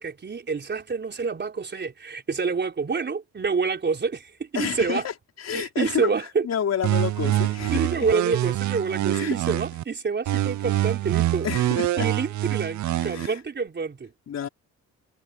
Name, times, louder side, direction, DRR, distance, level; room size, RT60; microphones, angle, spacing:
voice 1, 0.0-5.1 5.5-6.5 7.2-7.4 7.7-11.5 12.0-14.1, right 5 dB, 35° right, 4.3 m, -27 dB
voice 2, 4.5-6.1 6.4-8.1 9.1-9.4 11.4-12.1 12.9-13.4 14.3-14.5, left 8 dB, 60° left, 5.1 m, -30 dB
sound 1, 6.8-9.8 10.3-13.3, right 15 dB, 70° right, 0.7 m, -25 dB
cardioid pair, 90°, 30 cm